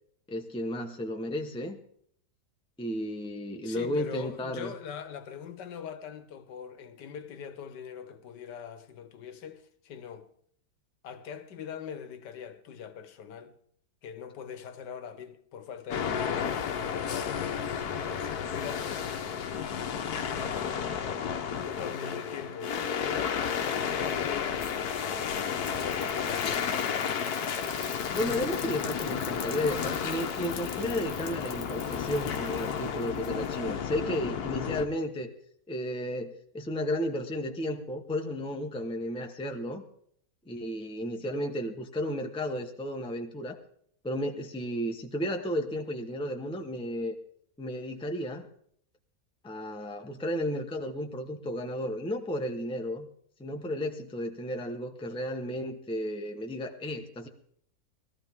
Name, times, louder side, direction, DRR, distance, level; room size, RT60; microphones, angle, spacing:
voice 1, 0.3-1.8 2.8-4.7 28.1-35.3 35.7-39.8 40.5-43.6 44.0-47.1 47.6-48.5 49.4-53.1 53.4-57.3, equal, 5° left, 0.9 m, -33 dB
voice 2, 3.6-10.3 11.0-13.6 14.0-17.6 18.0-19.0 20.3-21.1 21.6-23.4 24.0-25.0 25.8-26.8, left 7 dB, 85° left, 1.7 m, -42 dB
sound 1, 15.9-34.9, left 7 dB, 65° left, 1.4 m, -32 dB
Rain, 25.6-33.7, left 4 dB, 45° left, 0.4 m, -46 dB
20.5 x 13.5 x 3.6 m
omnidirectional pair, 1.8 m